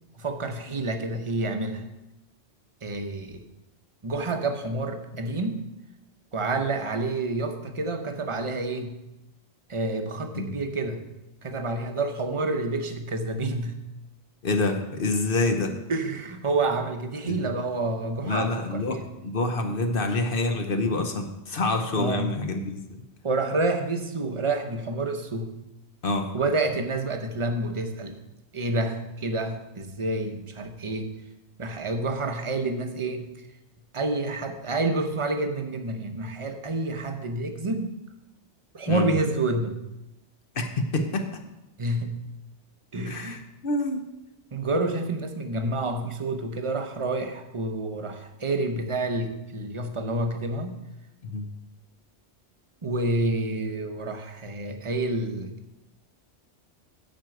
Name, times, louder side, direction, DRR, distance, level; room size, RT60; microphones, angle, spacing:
voice 1, 0.2-1.9 2.8-3.4 4.0-5.7 6.3-9.0 9.7-11.0 11.4-13.7 15.9-19.1 22.0-22.4 23.2-25.5 26.3-28.2 28.5-31.1 31.6-33.3 33.9-37.9 38.7-39.8 41.8-42.2 42.9-43.4 44.5-50.8 52.8-55.6, right 2 dB, 30° right, 6 dB, 0.8 m, -28 dB
voice 2, 14.4-15.8 17.2-17.4 18.2-22.8 26.0-26.3 38.9-39.1 40.5-41.4 43.1-44.0 51.2-51.5, left 2 dB, 55° left, 5 dB, 1.0 m, -27 dB
9.4 x 4.6 x 7.7 m, 0.92 s
omnidirectional pair, 1.1 m